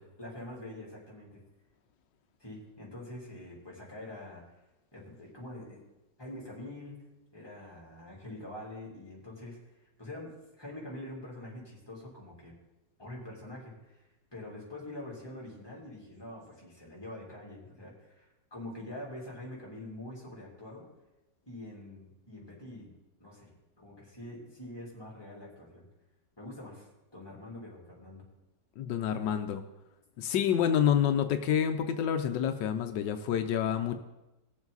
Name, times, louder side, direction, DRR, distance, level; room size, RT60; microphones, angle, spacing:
voice 1, 0.2-1.4 2.4-4.4 4.9-5.8 6.2-7.0 7.3-12.5 13.0-14.0 14.3-20.9 21.5-22.9 23.2-25.8 26.4-26.9 27.1-28.2, left 1 dB, 15° left, -3 dB, 3.3 m, -45 dB
voice 2, 28.8-29.6 30.2-34.0, left 9 dB, 85° left, 8 dB, 1.4 m, -28 dB
19.0 x 7.2 x 4.0 m, 0.99 s
omnidirectional pair, 1.9 m